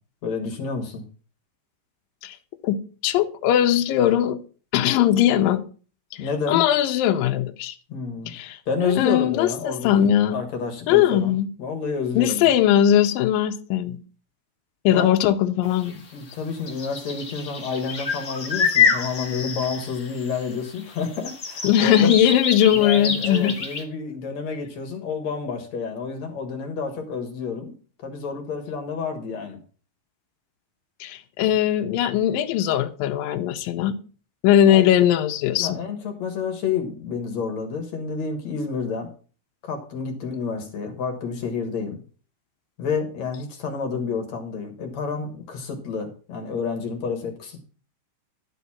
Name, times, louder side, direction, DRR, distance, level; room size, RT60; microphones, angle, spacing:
voice 1, 0.2-1.0 6.2-6.6 7.9-8.3 8.7-12.5 14.9-15.1 16.1-22.1 22.7-27.7 28.0-29.6 31.4-31.5 34.6-34.9 35.6-39.1 39.6-42.0 42.8-47.6, left 5 dB, 55° left, 4 dB, 2.4 m, -29 dB
voice 2, 3.0-4.4 4.7-5.6 6.5-7.7 8.3-8.6 8.9-10.4 10.9-11.5 12.2-14.0 14.9-16.0 21.6-23.6 31.0-34.0 34.4-35.8, left 11 dB, 75° left, 5 dB, 2.3 m, -20 dB
sound 1, 15.8-15.9 16.7-20.4 20.8-23.8, left 6 dB, 40° left, 1.3 m, -26 dB
12.0 x 4.1 x 7.1 m, 0.39 s
omnidirectional pair, 4.5 m